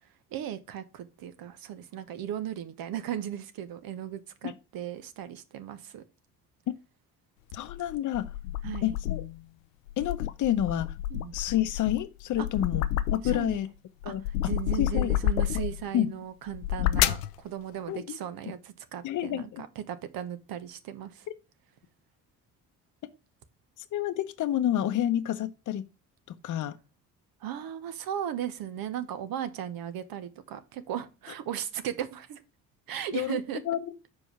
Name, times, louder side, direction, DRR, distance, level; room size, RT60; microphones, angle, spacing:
voice 1, 0.3-6.0 8.6-9.0 11.1-11.3 12.4-12.5 13.2-13.7 14.0-14.1 14.5-19.5 19.9-21.3 27.4-32.4 32.9-33.6, right 10 dB, 60° right, 1.0 m, -36 dB
sound 1, 7.5-9.4 9.9-13.6 14.0-15.9 16.5-17.3, left 13 dB, 90° left, 0.5 m, -30 dB
voice 2, 7.5-8.3 8.8-9.2 10.0-11.0 11.3-12.8 13.1-13.7 14.0-14.2 14.8-15.2 15.5-15.7 15.9-16.1 17.9-18.2 19.0-19.6 23.8-25.8 26.3-26.8 33.1-33.4 33.6-33.9, left 11 dB, 50° left, 0.8 m, -29 dB
5.3 x 4.7 x 5.7 m
hypercardioid pair, 55°, 39 cm